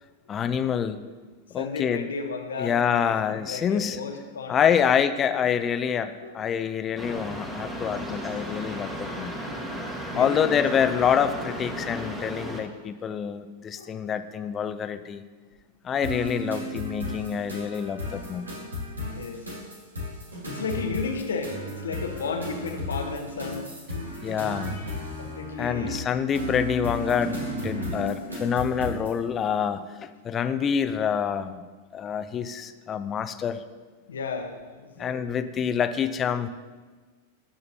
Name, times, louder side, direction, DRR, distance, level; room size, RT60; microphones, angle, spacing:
voice 1, 0.3-1.1 1.5-2.1 2.6-4.0 4.5-9.3 10.2-15.2 15.8-18.5 24.2-24.8 25.6-31.6 31.9-33.6 35.0-36.5, left 8 dB, 30° left, 11 dB, 0.4 m, -26 dB
voice 2, 1.5-4.7 6.2-6.3 7.1-7.3 9.5-9.7 10.1-10.6 13.8-14.0 19.1-19.4 20.4-23.7 25.2-26.0 27.8-28.2 34.1-35.4, left 4 dB, 80° left, 4 dB, 0.9 m, -34 dB
sound 1, 7.0-12.6, equal, 5° right, 1.3 m, -34 dB
sound 2, 16.0-29.2, left 1 dB, 90° right, 1.9 m, -34 dB
12.5 x 5.1 x 2.8 m, 1.4 s
hypercardioid pair, 95°, 0 cm